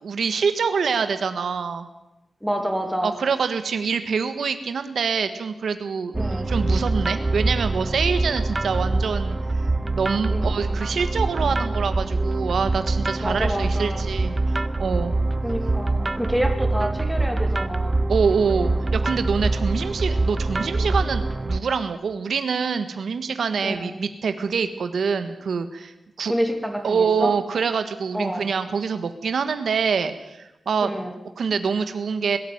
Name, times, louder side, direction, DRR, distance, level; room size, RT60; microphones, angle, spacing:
voice 1, 0.0-1.9 3.0-15.1 18.1-26.3 26.8-30.9 31.4-32.4, right 5 dB, 80° right, 10 dB, 1.5 m, -25 dB
voice 2, 2.4-3.2 6.1-6.5 10.3-10.6 13.2-14.1 15.4-18.0 23.6-24.0 26.3-27.3 28.1-28.5 30.8-31.2, equal, ahead, 3 dB, 2.8 m, -28 dB
sound 1, 6.1-21.6, right 2 dB, 25° right, 0.7 m, -24 dB
21.5 x 13.5 x 9.5 m, 0.96 s
wide cardioid pair, 145°, 0 cm